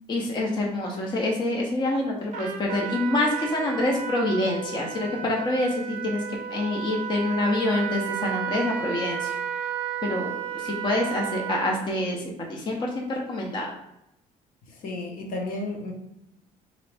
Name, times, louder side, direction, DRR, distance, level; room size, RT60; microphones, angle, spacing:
voice 1, 0.1-6.2 6.5-9.4 10.0-12.2 12.5-13.7, left 2 dB, 30° left, -1 dB, 0.6 m, -26 dB
Trumpet, 2.3-11.9, right 9 dB, 50° right, 0.5 m, -33 dB
voice 2, 14.8-15.9, left 2 dB, 60° left, 1 dB, 0.9 m, -32 dB
3.9 x 2.6 x 3.3 m, 0.82 s
cardioid pair, 160°, 16 cm